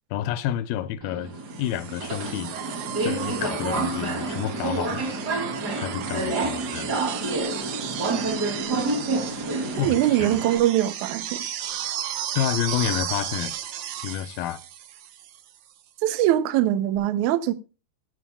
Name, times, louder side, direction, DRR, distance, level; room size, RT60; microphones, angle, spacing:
voice 1, 0.1-1.3 1.6-2.5 3.0-5.1 5.8-6.9 9.7-10.3 12.4-13.5 14.0-14.6, left 11 dB, 80° left, 2.5 m, -29 dB
Subway metro underground, 1.0-10.6, right 2 dB, 30° right, 2.6 m, -29 dB
sound 1, 1.5-15.5 17.0-17.1, right 10 dB, 65° right, 2.0 m, -35 dB
voice 2, 9.8-11.4 16.0-17.5, right 13 dB, 80° right, 1.7 m, -22 dB
14.0 x 13.0 x 2.3 m
omnidirectional pair, 4.4 m